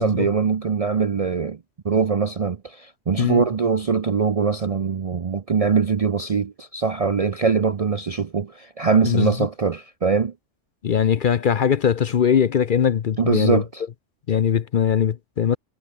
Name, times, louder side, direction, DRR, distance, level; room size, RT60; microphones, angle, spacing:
voice 1, 0.0-1.6 1.8-10.3 13.2-13.8, right 5 dB, 40° right, 0.5 m, -22 dB
voice 2, 9.0-9.5 10.8-13.6 14.3-15.6, left 8 dB, 50° left, 0.7 m, -20 dB
omnidirectional pair, 1.3 m